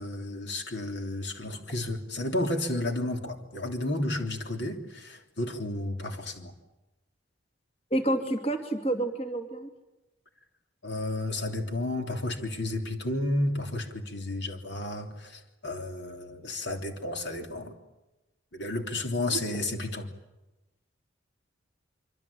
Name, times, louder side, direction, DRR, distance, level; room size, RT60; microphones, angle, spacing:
voice 1, 0.0-6.5 10.8-17.7 18.5-20.1, left 1 dB, 60° left, 4 dB, 3.3 m, -32 dB
voice 2, 7.9-9.7 19.5-19.7, right 1 dB, 30° left, 5 dB, 2.8 m, -29 dB
26.0 x 25.5 x 8.6 m, 1.0 s
head